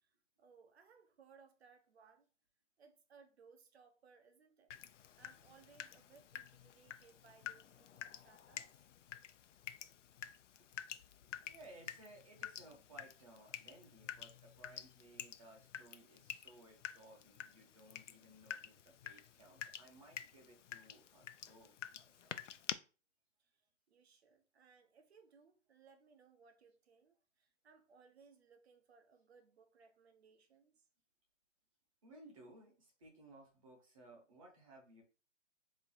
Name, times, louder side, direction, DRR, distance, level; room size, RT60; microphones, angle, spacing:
voice 1, 0.0-2.3 2.8-4.7 5.1-8.9 23.4-23.5 23.9-30.9, right 5 dB, 55° right, 0.9 m, -65 dB
Water tap faucet / Drip, 4.7-22.7, left 9 dB, 70° left, 0.5 m, -50 dB
voice 2, 11.4-22.4 32.0-35.0, right 1 dB, 25° right, 1.1 m, -60 dB
3.6 x 3.1 x 4.1 m
hypercardioid pair, 170°, 38 cm